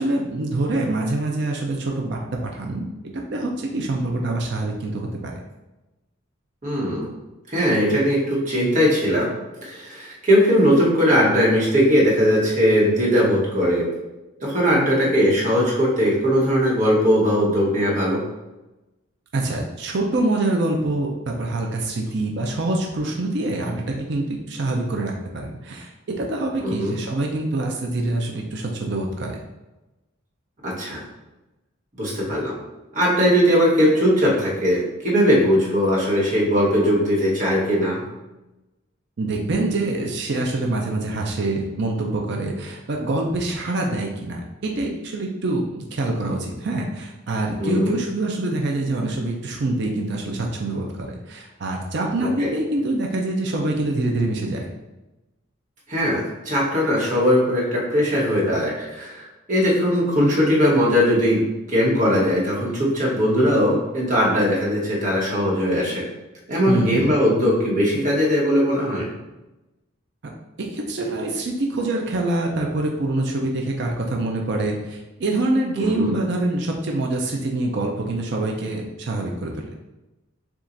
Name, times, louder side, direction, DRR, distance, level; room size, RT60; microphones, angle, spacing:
voice 1, 0.0-2.9 3.3-5.3 19.3-25.9 26.2-29.4 39.2-54.7 66.7-67.1 70.2-70.3 70.6-79.5, right 2 dB, 55° right, 1 dB, 0.5 m, -25 dB
voice 2, 6.6-7.1 7.5-9.3 9.6-13.9 14.4-18.2 26.6-26.9 30.6-31.0 32.0-32.6 32.9-38.0 47.6-47.9 52.4-52.5 55.9-61.4 61.7-66.1 66.5-69.1 75.8-76.2, equal, 40° right, -5 dB, 1.2 m, -19 dB
7.1 x 2.4 x 2.6 m, 1.0 s
head